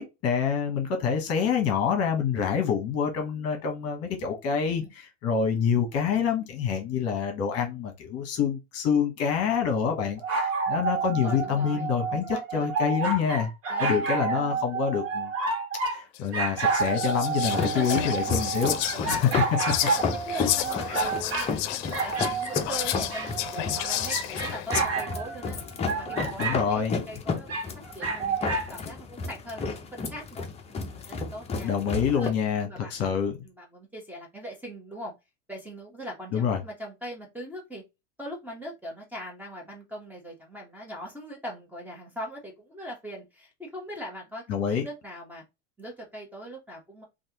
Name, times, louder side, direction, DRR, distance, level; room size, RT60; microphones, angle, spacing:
voice 1, 0.0-13.5 13.8-15.3 15.9-19.3 26.4-27.0 31.6-33.3 36.3-36.6 44.5-44.8, left 7 dB, 40° left, 1.1 m, -27 dB
sound 1, 10.2-16.0 16.3-21.5 21.9-26.6 27.5-28.7, right 4 dB, 40° right, 1.5 m, -30 dB
voice 2, 11.0-12.7 13.7-14.7 17.4-18.1 18.9-19.4 19.9-25.6 26.0-31.7 32.1-32.3 32.6-33.2 33.4-35.1 35.5-37.8 38.2-44.4 44.7-45.4 45.8-47.0, equal, 5° right, 1.2 m, -41 dB
Whispering, 16.1-16.2 16.7-24.8, left 13 dB, 65° left, 0.6 m, -32 dB
sound 2, 17.4-32.3, left 4 dB, 15° left, 0.7 m, -33 dB
3.2 x 2.5 x 2.9 m
supercardioid pair, 120°, 36 cm